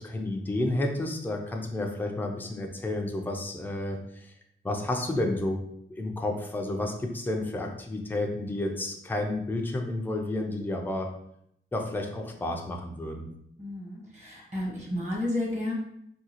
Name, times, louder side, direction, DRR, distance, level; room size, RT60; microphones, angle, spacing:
voice 1, 0.0-4.3 4.6-5.6 5.9-11.1 11.7-13.3, left 1 dB, 10° left, 2 dB, 0.4 m, -31 dB
voice 2, 13.6-15.7, left 1 dB, 35° right, -3 dB, 1.1 m, -32 dB
3.7 x 2.3 x 2.8 m, 0.73 s
wide cardioid pair, 130°, 21 cm